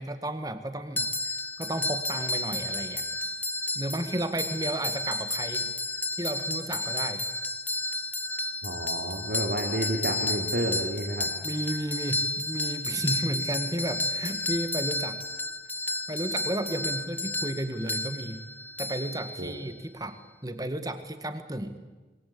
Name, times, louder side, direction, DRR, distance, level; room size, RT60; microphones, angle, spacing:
voice 1, 0.0-1.3 1.6-3.0 3.7-5.7 6.2-7.2 11.4-15.2 15.8-18.4 18.8-20.2 20.4-21.8, right 1 dB, 20° right, 10 dB, 1.8 m, -33 dB
sound 1, 1.0-19.7, left 2 dB, 10° left, 0.8 m, -32 dB
voice 2, 8.6-11.3 19.4-19.5, right 1 dB, 60° right, 2 dB, 3.0 m, -30 dB
26.5 x 22.0 x 8.6 m, 1.2 s
head